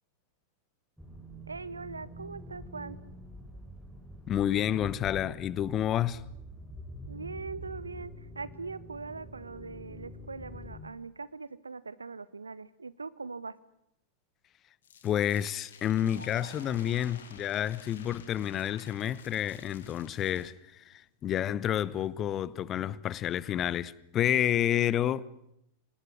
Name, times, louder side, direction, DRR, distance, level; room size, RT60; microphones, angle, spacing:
sound 1, 1.0-10.8, equal, ahead, 4.2 m, -46 dB
voice 1, 1.5-3.0 7.1-13.5, right 4 dB, 75° right, 1.0 m, -41 dB
voice 2, 4.3-6.2 15.0-25.2, left 11 dB, 30° left, 1.0 m, -29 dB
sound 2, 14.8-20.5, left 7 dB, 65° left, 3.1 m, -54 dB
Laughter, 15.4-18.5 19.3-19.4 20.8-20.9, left 1 dB, 85° left, 4.4 m, -52 dB
26.5 x 20.0 x 9.8 m
figure-of-eight pair, 90°, 0 cm